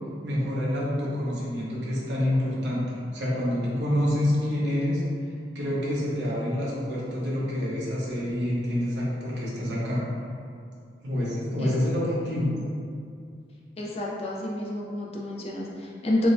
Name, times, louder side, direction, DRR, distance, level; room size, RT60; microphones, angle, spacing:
voice 1, 0.2-5.0 5.5-10.1 11.0-12.5, left 1 dB, 80° right, -6 dB, 0.9 m, -27 dB
voice 2, 13.8-16.3, left 1 dB, 35° left, -4 dB, 0.5 m, -29 dB
4.6 x 2.1 x 2.6 m, 2.3 s
head